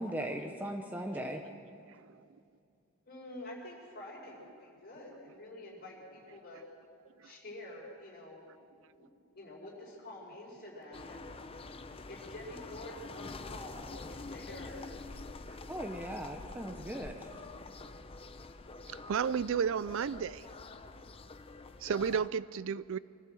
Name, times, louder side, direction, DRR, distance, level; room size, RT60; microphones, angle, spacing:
voice 1, 0.0-1.4 15.7-17.3, right 1 dB, 10° right, 4 dB, 0.8 m, -38 dB
voice 2, 3.1-6.6 7.2-8.4 8.7-11.3 12.1-14.9, left 1 dB, 45° left, -2 dB, 4.9 m, -48 dB
sound 1, 10.9-22.3, left 3 dB, 25° left, 0.6 m, -46 dB
voice 3, 18.9-20.5 21.8-23.0, right 7 dB, 60° right, 18 dB, 0.4 m, -32 dB
24.5 x 15.0 x 7.7 m, 2.5 s
head